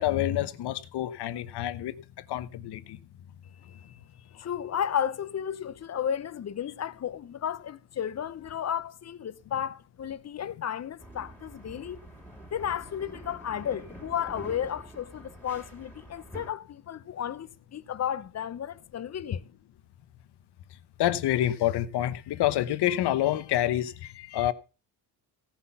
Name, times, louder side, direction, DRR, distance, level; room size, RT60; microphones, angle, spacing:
voice 1, 0.0-1.9 2.3-3.0 21.0-24.5, left 13 dB, 60° left, 1.1 m, -27 dB
voice 2, 3.6-4.0 4.3-12.0 12.5-19.4, left 9 dB, 35° left, 0.8 m, -33 dB
sound 1, 11.0-16.5, right 1 dB, 5° left, 4.2 m, -47 dB
16.5 x 5.8 x 5.6 m
supercardioid pair, 85°, 44 cm